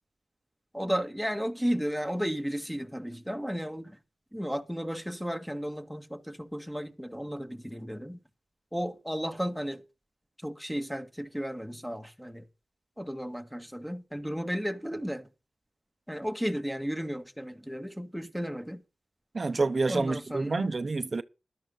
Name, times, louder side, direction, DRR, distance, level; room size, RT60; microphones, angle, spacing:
voice 1, 0.7-4.0 4.3-8.2 8.7-9.8 10.4-12.4 13.0-15.3 16.1-18.8 19.9-20.7, equal, ahead, 1.8 m, -34 dB
voice 2, 19.3-21.2, right 3 dB, 50° right, 0.7 m, -28 dB
13.5 x 11.5 x 3.9 m
cardioid pair, 50°, 0 cm